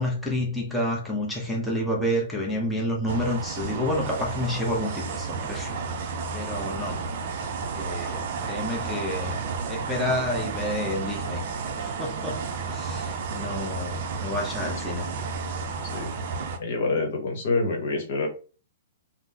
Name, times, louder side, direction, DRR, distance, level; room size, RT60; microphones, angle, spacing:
voice 1, 0.0-6.1 6.3-7.0 7.7-9.4 9.7-11.4 11.8-15.1, left 1 dB, ahead, 0.8 m, -29 dB
sound 1, 3.1-16.6, right 5 dB, 50° right, 0.5 m, -32 dB
voice 2, 16.6-18.3, left 3 dB, 55° left, 1.0 m, -26 dB
3.5 x 2.0 x 2.8 m
figure-of-eight pair, 115°, 0 cm